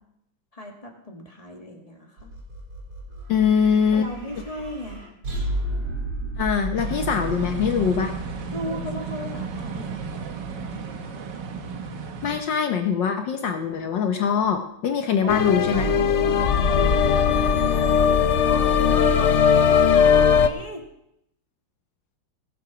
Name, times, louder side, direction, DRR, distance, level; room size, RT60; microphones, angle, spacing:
voice 1, 0.5-2.3 3.9-5.1 8.5-10.3 15.2-20.8, left 1 dB, 15° left, 1 dB, 2.0 m, -36 dB
sound 1, 2.2-9.5 15.7-19.8, right 3 dB, 85° right, 6.0 m, -34 dB
voice 2, 3.3-4.1 6.4-8.1 12.2-15.9, left 7 dB, 65° left, 6 dB, 1.5 m, -22 dB
sound 2, 6.8-12.4, right 4 dB, 60° right, 1.7 m, -33 dB
sound 3, 15.3-20.5, left 7 dB, 85° left, 0.6 m, -19 dB
19.5 x 7.1 x 6.0 m, 0.78 s
omnidirectional pair, 2.3 m